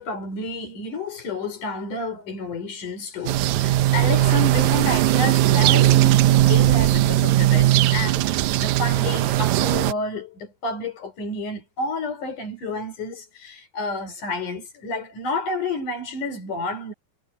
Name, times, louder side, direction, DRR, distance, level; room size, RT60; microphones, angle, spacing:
voice 1, 0.0-16.9, left 2 dB, 60° left, 6.2 m, -30 dB
sound 1, 3.3-9.9, right 14 dB, 85° right, 1.7 m, -18 dB
omnidirectional pair, 4.1 m